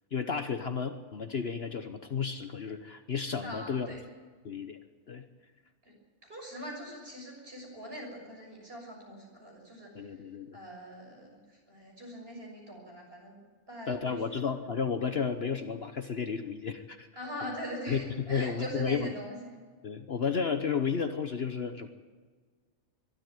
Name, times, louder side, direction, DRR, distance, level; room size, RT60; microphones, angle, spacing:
voice 1, 0.1-3.9 4.4-4.8 5.1-5.2 9.9-10.6 13.9-17.1 17.9-18.0 18.3-19.1 19.8-21.9, left 6 dB, 50° left, 8 dB, 1.2 m, -32 dB
voice 2, 3.4-4.0 5.8-5.9 6.2-10.1 10.5-13.4 13.7-14.2 17.1-19.5, equal, 40° right, 0 dB, 6.6 m, -42 dB
22.5 x 13.0 x 9.1 m, 1.5 s
omnidirectional pair, 1.5 m